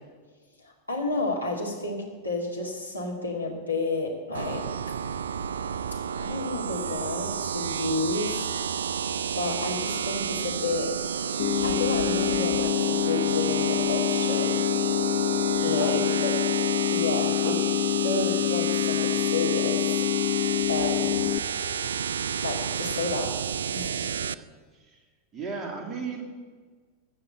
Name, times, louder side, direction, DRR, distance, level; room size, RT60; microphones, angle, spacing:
voice 1, 0.6-4.6 6.2-8.5 9.4-10.9 11.6-14.6 15.6-16.4 16.9-17.6 18.0-20.1 20.7-21.3 22.4-23.3 23.7-23.9, left 2 dB, 85° left, -1 dB, 2.3 m, -31 dB
sound 1, 4.3-24.3, right 7 dB, 70° right, 0.3 m, -31 dB
sound 2, 11.4-21.4, left 15 dB, 45° left, 0.5 m, -26 dB
voice 2, 15.8-16.4 17.4-17.6 23.9-24.4 24.7-25.0 25.3-26.2, right 4 dB, 20° right, 1 dB, 2.5 m, -37 dB
15.0 x 6.5 x 7.9 m, 1.5 s
figure-of-eight pair, 90°, 0 cm